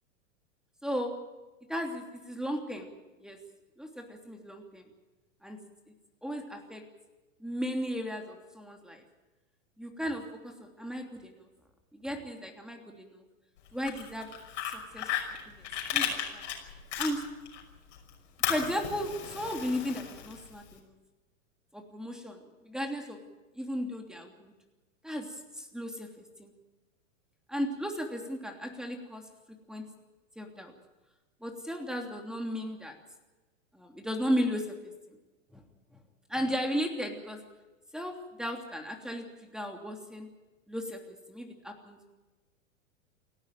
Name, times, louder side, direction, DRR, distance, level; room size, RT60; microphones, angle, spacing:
voice 1, 1.7-2.9 3.2-3.4 3.8-4.8 5.4-5.6 6.2-6.8 7.4-9.0 9.8-11.4 11.9-13.2 13.7-14.3 14.6-15.1 15.5-15.6 15.9-16.4 17.0-17.2 18.5-20.9 21.7-23.2 23.5-24.5 25.0-26.5 27.5-29.3 29.7-29.8 30.4-30.7 31.4-33.0 33.7-34.7 35.1-35.2 35.5-35.6 36.3-37.4 37.9-40.3 40.7-42.0, equal, ahead, 3 dB, 3.0 m, -35 dB
Fire, 13.7-17.6 17.9-20.7, left 9 dB, 60° left, 5.9 m, -35 dB
29.0 x 12.5 x 9.2 m, 1.2 s
figure-of-eight pair, 100°, 40 cm